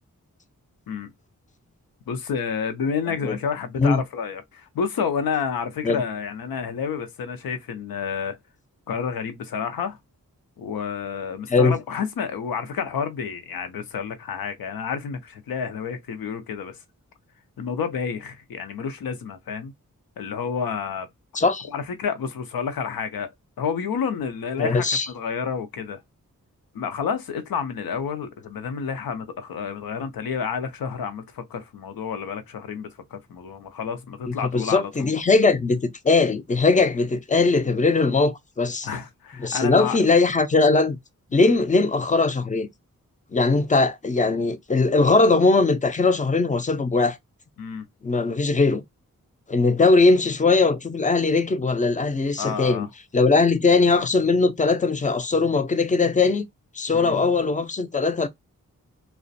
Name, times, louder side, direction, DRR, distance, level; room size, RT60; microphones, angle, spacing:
voice 1, 2.1-8.4 8.9-10.0 10.6-16.8 17.6-19.7 20.2-21.1 21.6-23.3 23.6-26.0 26.7-35.1 38.8-40.0 41.3-41.6 47.6-47.8 52.4-52.9 56.9-57.2, left 6 dB, 85° left, 0.6 m, -30 dB
voice 2, 21.4-21.7 24.6-25.1 34.3-38.9 39.4-41.0 41.3-42.7 43.3-47.2 48.0-48.8 49.5-52.9 53.1-56.5 56.8-58.3, left 3 dB, 25° left, 0.4 m, -20 dB
2.4 x 2.1 x 2.5 m
cardioid pair, 40°, 34 cm